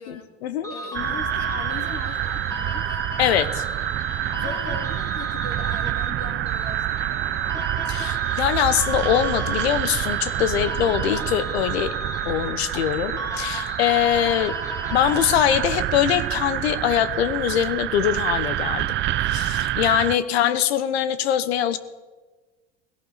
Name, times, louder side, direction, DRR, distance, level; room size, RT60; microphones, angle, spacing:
voice 1, 0.0-0.7 3.2-3.6 7.9-11.9 12.2-14.5 14.9-18.9 19.3-21.8, left 10 dB, 85° left, 13 dB, 1.1 m, -23 dB
sound 1, 0.6-15.9, left 2 dB, 10° left, 2.7 m, -36 dB
voice 2, 0.7-3.0 4.4-7.6 20.0-20.4, left 5 dB, 45° left, 3 dB, 2.9 m, -39 dB
sound 2, 0.9-20.2, right 14 dB, 40° right, 0.5 m, -27 dB
18.5 x 17.0 x 4.2 m, 1.2 s
hypercardioid pair, 90°, 31 cm